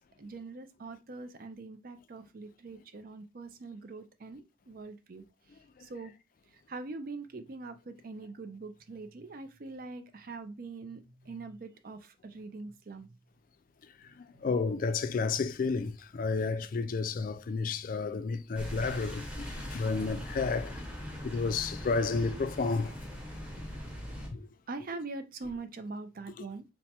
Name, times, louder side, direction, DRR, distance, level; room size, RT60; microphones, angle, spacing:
voice 1, 0.0-5.2 5.8-6.1 6.7-13.1 14.3-14.5 24.7-26.6, right 3 dB, 45° right, 0.5 m, -43 dB
voice 2, 14.2-20.8 21.2-22.9 24.3-24.5 26.4-26.5, left 4 dB, 45° left, 0.3 m, -31 dB
sound 1, 18.6-24.3, equal, 5° right, 1.0 m, -41 dB
4.4 x 2.1 x 4.2 m
head